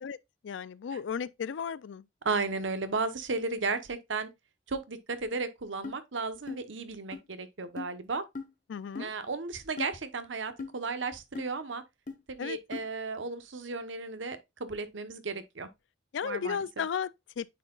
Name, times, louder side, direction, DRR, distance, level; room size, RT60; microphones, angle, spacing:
voice 1, 0.4-2.1 8.7-9.1 12.4-12.6 16.1-17.5, left 7 dB, 75° left, 0.4 m, -34 dB
voice 2, 2.2-4.3 4.7-8.2 9.0-11.8 12.3-15.7 16.2-16.6, right 4 dB, 85° right, 1.0 m, -34 dB
sound 1, 5.8-6.0 6.5-6.6 7.1-7.2 7.8-7.9 8.4-8.5 9.0-9.1 9.8-9.9 10.6-10.7 11.4-11.5 12.1-12.2 12.7-12.9, left 4 dB, 45° left, 0.9 m, -38 dB
9.1 x 4.5 x 2.3 m
head